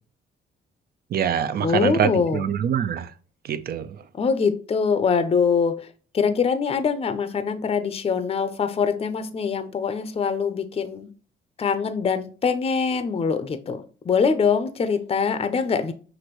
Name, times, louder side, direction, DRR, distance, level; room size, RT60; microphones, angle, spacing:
voice 1, 1.1-3.1 3.4-4.0, right 8 dB, 50° right, 0.5 m, -24 dB
voice 2, 1.6-2.4 4.1-5.7 6.1-11.1 11.6-15.9, left 5 dB, 30° left, 0.5 m, -23 dB
6.0 x 2.6 x 3.0 m
cardioid pair, 90°, 20 cm